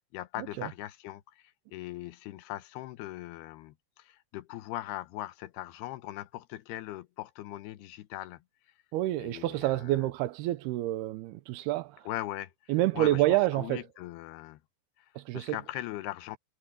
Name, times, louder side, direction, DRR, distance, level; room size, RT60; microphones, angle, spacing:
voice 1, 0.0-8.4 9.2-10.1 12.1-13.2 13.5-14.6 15.0-16.4, left 15 dB, 90° left, 2.9 m, -40 dB
voice 2, 8.9-12.0 12.7-13.8 15.2-15.6, right 15 dB, 80° right, 2.7 m, -28 dB
omnidirectional pair, 4.6 m